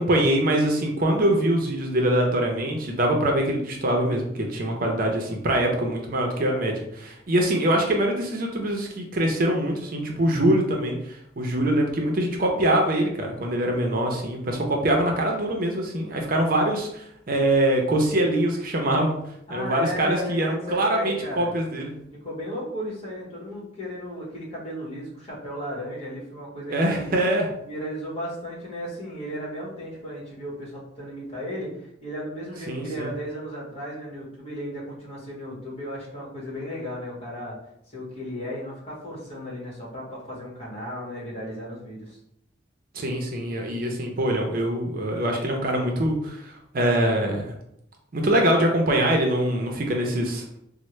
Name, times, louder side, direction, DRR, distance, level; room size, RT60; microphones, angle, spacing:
voice 1, 0.0-19.2 19.5-21.9 26.7-27.5 32.7-33.1 42.9-47.5 48.1-50.4, right 1 dB, 50° right, 2 dB, 0.6 m, -23 dB
voice 2, 19.5-21.5 22.2-27.1 27.6-37.6 37.9-42.2, equal, 35° left, -5 dB, 1.2 m, -35 dB
4.2 x 2.0 x 3.1 m, 0.76 s
head